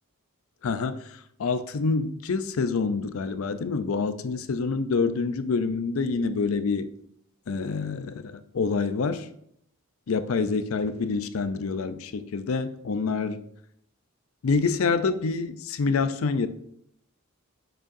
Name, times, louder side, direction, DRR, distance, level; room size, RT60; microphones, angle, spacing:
voice 1, 0.6-6.9 7.5-9.3 10.1-13.4 14.4-16.5, left 4 dB, 80° left, 12 dB, 0.5 m, -27 dB
6.5 x 6.3 x 2.6 m, 0.72 s
head